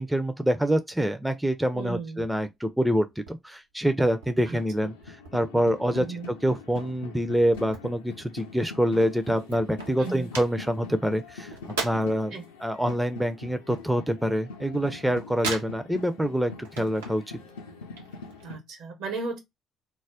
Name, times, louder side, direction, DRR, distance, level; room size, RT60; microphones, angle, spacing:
voice 1, 0.0-6.1 6.4-11.6 11.8-17.2, equal, 5° right, 0.4 m, -26 dB
voice 2, 1.7-2.2 4.5-4.6 6.0-6.3 10.0-10.3 12.3-12.4 18.4-19.4, right 3 dB, 65° right, 0.9 m, -35 dB
sound 1, 1.9-2.3 2.6-4.3 4.7-5.7 6.0-8.6 8.9-9.0 9.1-12.3 12.6-14.6 14.8-16.2 16.5-17.3 17.6-18.5, right 4 dB, 85° right, 0.5 m, -38 dB
sound 2, 4.0-18.6, left 4 dB, 80° left, 0.4 m, -43 dB
2.2 x 2.0 x 3.5 m
hypercardioid pair, 50°, 0 cm